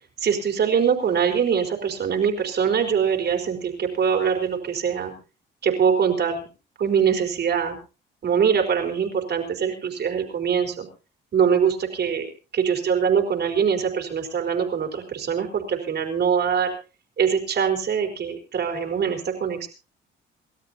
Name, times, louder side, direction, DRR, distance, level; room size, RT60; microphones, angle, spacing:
voice 1, 0.2-5.1 5.6-6.5 6.8-7.8 8.2-10.9 11.3-16.8 17.2-19.7, right 7 dB, 55° right, 4 dB, 4.5 m, -23 dB
28.5 x 13.0 x 2.8 m, 0.32 s
cardioid pair, 90°, 20 cm